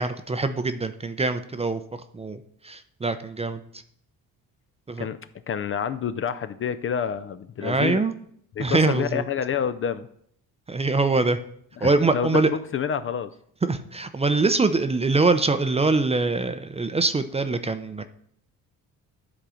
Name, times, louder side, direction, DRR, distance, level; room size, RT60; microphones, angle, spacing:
voice 1, 0.0-1.8 2.1-2.4 2.6-3.6 4.9-5.1 7.6-8.1 8.6-9.2 10.7-11.4 11.8-12.5 13.6-18.0, right 3 dB, 15° right, 10 dB, 0.5 m, -23 dB
voice 2, 5.5-8.0 8.6-10.1 11.8-12.5 12.7-13.3, left 7 dB, 35° left, 12 dB, 0.4 m, -28 dB
10.0 x 3.8 x 4.9 m, 0.67 s
cardioid pair, 85°, 37 cm